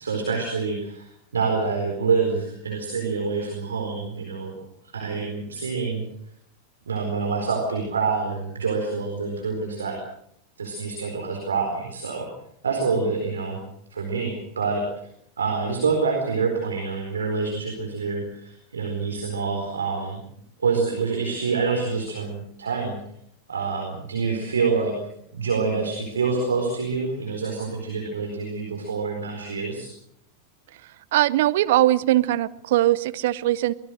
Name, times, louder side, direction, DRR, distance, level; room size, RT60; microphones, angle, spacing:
voice 1, 0.0-4.5 4.9-6.0 6.9-10.0 10.6-12.3 12.6-13.6 13.9-14.8 15.4-20.2 20.6-23.0 23.5-24.9 25.3-29.9, right 4 dB, 70° right, 2 dB, 4.4 m, -26 dB
voice 2, 31.1-33.7, right 15 dB, 55° right, 15 dB, 0.8 m, -20 dB
24.5 x 19.5 x 6.5 m, 0.71 s
figure-of-eight pair, 90°, 0 cm